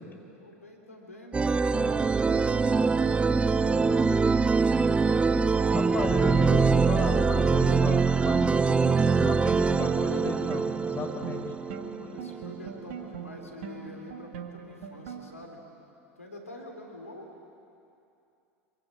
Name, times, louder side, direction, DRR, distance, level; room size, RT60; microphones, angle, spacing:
voice 1, 0.4-4.1 8.6-9.3 11.8-15.6 16.2-17.3, left 1 dB, 90° left, 1 dB, 3.5 m, -46 dB
sound 1, 1.3-12.7, right 4 dB, 15° right, 0.6 m, -24 dB
voice 2, 5.7-8.9 9.2-11.4, left 3 dB, 25° left, 4 dB, 4.5 m, -35 dB
sound 2, 7.9-15.5, right 7 dB, 65° right, 2.2 m, -42 dB
26.5 x 23.5 x 8.7 m, 2.7 s
figure-of-eight pair, 80°, 8 cm